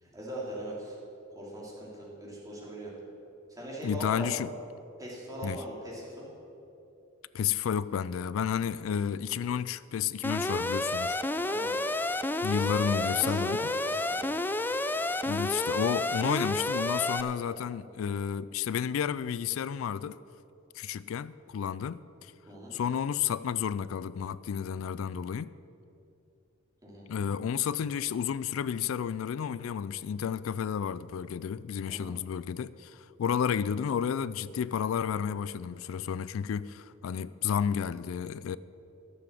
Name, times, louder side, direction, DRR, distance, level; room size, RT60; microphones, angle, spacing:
voice 1, 0.0-1.0 1.3-2.9 3.5-4.5 5.0-6.3 11.4-11.7 12.9-14.3 22.5-22.7 26.8-27.1 31.9-32.1, right 1 dB, 20° right, 2.9 m, -40 dB
voice 2, 3.8-4.5 5.4-5.6 7.3-11.2 12.4-13.6 15.3-20.2 20.8-22.3 22.7-25.5 27.1-38.6, left 8 dB, 85° left, 0.3 m, -31 dB
Alarm, 10.2-17.2, left 2 dB, 10° left, 0.4 m, -30 dB
13.5 x 6.9 x 7.5 m
head